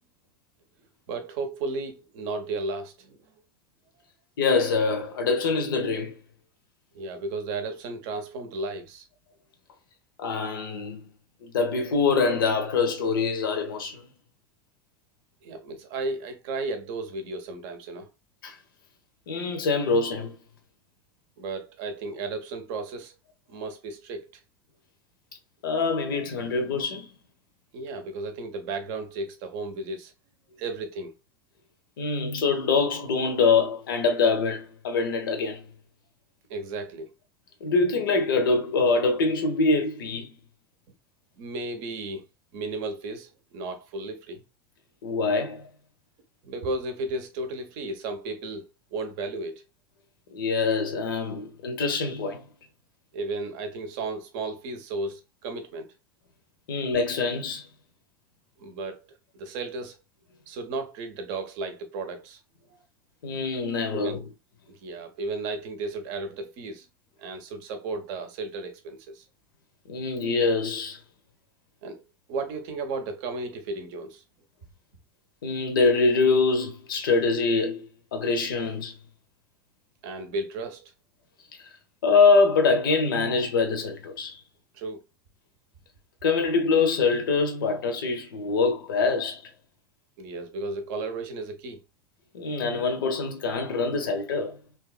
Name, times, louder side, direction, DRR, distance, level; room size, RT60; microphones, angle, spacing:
voice 1, 1.1-3.3 6.9-9.1 15.4-18.1 21.4-23.1 23.5-24.3 27.7-30.1 30.6-31.2 36.5-37.1 41.4-42.2 42.5-44.4 46.4-49.6 53.1-55.9 58.6-59.1 59.3-60.0 60.5-62.4 63.9-64.2 64.7-66.9 67.2-69.2 71.8-72.0 72.3-74.2 80.0-80.9 84.7-85.0 90.2-91.8, right 3 dB, 50° right, 0.7 m, -34 dB
voice 2, 4.4-6.2 10.2-11.1 11.4-14.0 18.4-18.6 19.3-20.4 25.6-27.1 32.0-35.6 37.6-40.3 45.0-45.6 50.3-52.4 56.7-57.7 63.2-64.2 69.9-71.0 75.4-79.0 82.0-84.4 86.2-89.4 92.3-94.6, left 4 dB, 70° left, 0.6 m, -24 dB
2.8 x 2.3 x 2.3 m
figure-of-eight pair, 80°, 12 cm